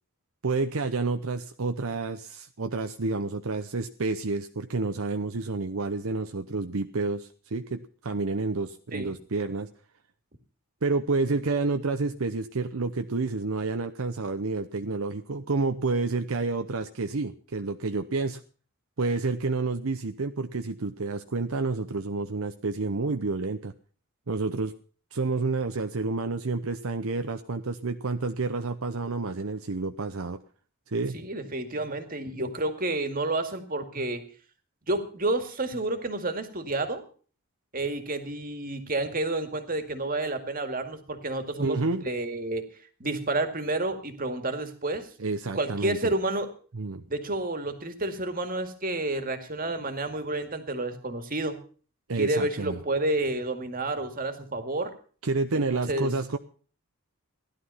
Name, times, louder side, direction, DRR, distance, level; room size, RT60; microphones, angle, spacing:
voice 1, 0.4-9.7 10.8-18.4 19.0-23.7 24.3-24.7 25.1-30.4 30.9-31.2 41.6-42.1 45.2-46.1 46.7-47.0 52.1-52.8 55.2-56.4, right 3 dB, 70° right, 7 dB, 0.8 m, -29 dB
voice 2, 31.1-34.2 34.9-37.0 37.7-41.8 42.1-42.6 43.0-45.1 45.5-46.5 47.1-51.6 52.1-54.9 55.5-56.1, right 2 dB, 40° right, 8 dB, 2.1 m, -30 dB
16.0 x 12.0 x 5.6 m, 0.41 s
head